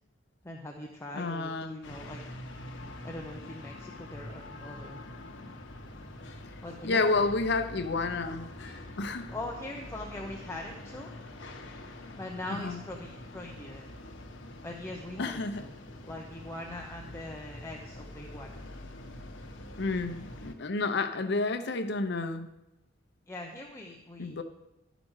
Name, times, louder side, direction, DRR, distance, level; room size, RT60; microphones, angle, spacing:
voice 1, 0.4-2.2 3.0-5.0 6.6-7.2 9.3-11.1 12.2-13.9 14.6-15.7 16.1-18.6 23.3-24.4, left 1 dB, 15° left, 0 dB, 0.8 m, -41 dB
voice 2, 1.1-1.9 6.8-8.5 9.0-9.3 12.5-12.8 15.2-15.6 19.8-22.5 24.2-24.4, left 3 dB, 65° left, 8 dB, 0.8 m, -30 dB
sound 1, 1.8-20.5, left 1 dB, 80° left, 1.1 m, -45 dB
11.5 x 5.0 x 6.3 m, 0.92 s
head